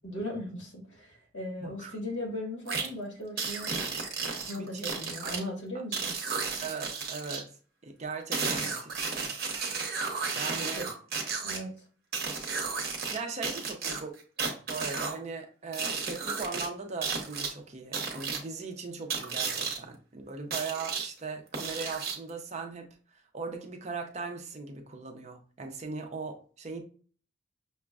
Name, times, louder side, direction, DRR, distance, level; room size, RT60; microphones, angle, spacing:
voice 1, 0.0-3.7 4.5-6.1 10.8-10.9 11.4-11.7, left 1 dB, 65° left, 1.6 m, -38 dB
voice 2, 1.6-1.9 4.6-4.9 5.2-5.3 6.6-7.6 7.8-9.4 10.3-10.9 13.1-14.1 14.7-22.9 23.3-26.8, right 4 dB, 35° right, 0.5 m, -39 dB
sound 1, 2.7-2.9 3.4-5.4 5.9-7.4 8.3-11.6 12.1-13.2 13.4-15.2 15.7-16.7 17.0-17.5 17.9-18.4 19.1-19.8 20.5-21.1 21.5-22.3, right 5 dB, 50° right, 0.9 m, -33 dB
5.9 x 2.1 x 2.3 m
head